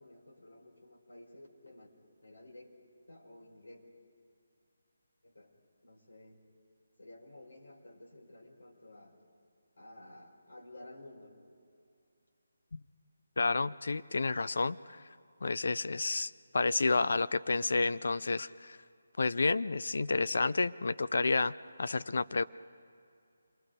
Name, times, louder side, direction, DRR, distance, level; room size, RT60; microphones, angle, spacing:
voice 1, 0.0-1.9 2.2-2.7 3.1-3.8 5.2-5.5 5.8-6.4 7.0-9.2 9.8-11.4, left 1 dB, 80° left, -1 dB, 5.2 m, -53 dB
voice 2, 13.4-15.0 15.4-18.8 19.2-22.4, left 3 dB, 65° left, 15 dB, 0.6 m, -30 dB
27.5 x 22.0 x 5.2 m, 2.5 s
figure-of-eight pair, 155°, 0 cm